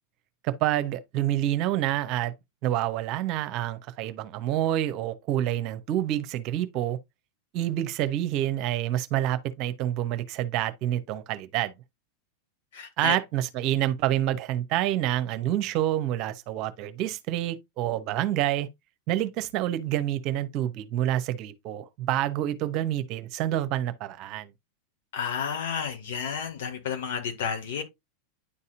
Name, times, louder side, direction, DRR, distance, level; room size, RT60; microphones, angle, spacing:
voice 1, 0.4-2.3 2.6-7.0 7.5-11.7 13.0-18.7 19.1-24.5, right 13 dB, 50° right, 0.9 m, -28 dB
voice 2, 12.7-13.2 25.1-27.8, left 7 dB, 65° left, 2.0 m, -31 dB
10.0 x 4.1 x 2.6 m
hypercardioid pair, 95°, 0 cm